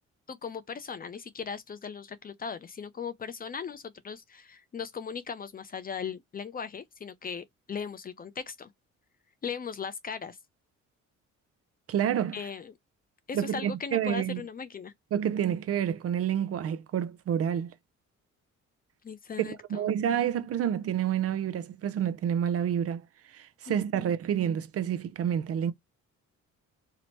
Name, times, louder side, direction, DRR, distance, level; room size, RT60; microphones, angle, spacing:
voice 1, 0.3-8.7 9.4-10.4 12.3-12.7 13.3-14.9 19.0-19.9 23.7-24.1, left 6 dB, 30° left, 0.4 m, -38 dB
voice 2, 11.9-12.4 13.3-14.4 15.1-17.7 19.4-23.0 23.3-25.7, right 9 dB, 50° right, 0.5 m, -29 dB
2.8 x 2.0 x 2.9 m
cardioid pair, 90°, 30 cm